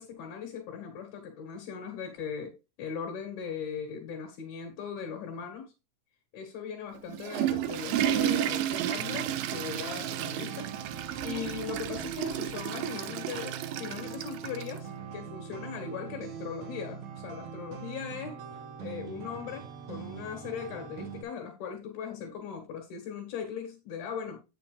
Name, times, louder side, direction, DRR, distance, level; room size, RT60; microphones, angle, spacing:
voice 1, 0.0-5.7 6.3-10.7 11.2-18.4 18.8-24.4, left 7 dB, 75° left, 2 dB, 3.6 m, -39 dB
Water / Toilet flush, 6.9-14.8, right 11 dB, 80° right, 2.1 m, -32 dB
sound 1, 9.0-21.2, right 7 dB, 60° right, 2.1 m, -42 dB
8.6 x 6.6 x 3.3 m, 0.28 s
omnidirectional pair, 4.5 m